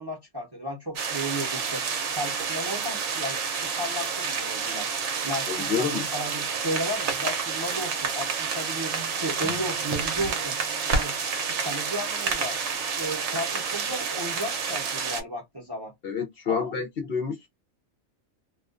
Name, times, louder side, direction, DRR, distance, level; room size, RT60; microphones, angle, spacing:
voice 1, 0.0-4.9 5.2-10.5 10.9-11.1 11.6-12.6 12.9-15.9 16.4-16.7, equal, 25° right, 0.6 m, -34 dB
sound 1, 1.0-15.2, right 5 dB, 70° right, 0.9 m, -29 dB
voice 2, 5.5-6.0 16.0-17.5, left 6 dB, 60° left, 0.7 m, -28 dB
Acoustic guitar / Strum, 9.4-12.9, right 2 dB, 15° left, 0.9 m, -47 dB
2.3 x 2.2 x 2.4 m
omnidirectional pair, 1.3 m